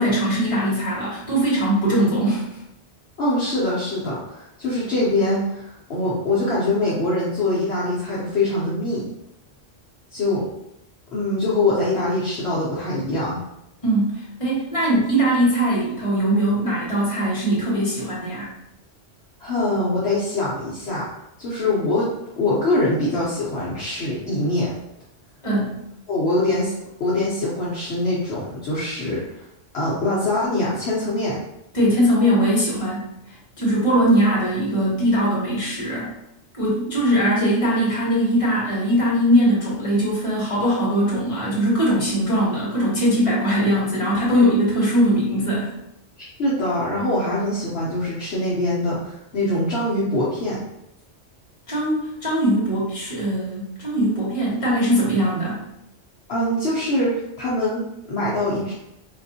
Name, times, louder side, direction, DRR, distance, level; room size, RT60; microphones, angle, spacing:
voice 1, 0.0-2.4 13.8-14.1 14.4-18.5 25.4-25.7 31.7-33.1 33.6-36.1 36.5-45.7 51.7-55.6, equal, 30° left, -6 dB, 1.3 m, -20 dB
voice 2, 3.2-9.1 10.1-10.4 11.1-13.4 19.4-21.1 21.4-22.1 22.4-24.7 26.1-26.7 27.0-29.4 29.7-31.4 44.3-44.4 46.4-50.6 56.3-58.7, left 1 dB, 60° left, -8 dB, 1.0 m, -23 dB
4.0 x 2.6 x 2.7 m, 0.82 s
omnidirectional pair, 1.3 m